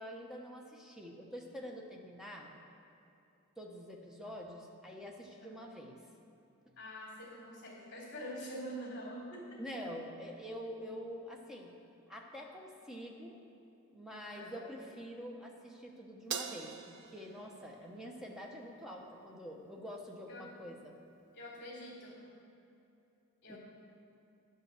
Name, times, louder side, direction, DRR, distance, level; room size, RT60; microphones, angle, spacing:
voice 1, 0.0-2.5 3.6-6.0 9.6-11.7 12.1-13.4 13.9-20.9 23.5-23.6, equal, ahead, 0 dB, 0.9 m, -46 dB
voice 2, 6.8-9.6 14.3-14.7 20.3-20.5 21.3-22.3 23.4-23.6, equal, 45° left, -11 dB, 2.8 m, -45 dB
Crash cymbal, 16.3-18.8, right 7 dB, 55° right, 0.5 m, -44 dB
10.5 x 5.5 x 7.6 m, 2.7 s
head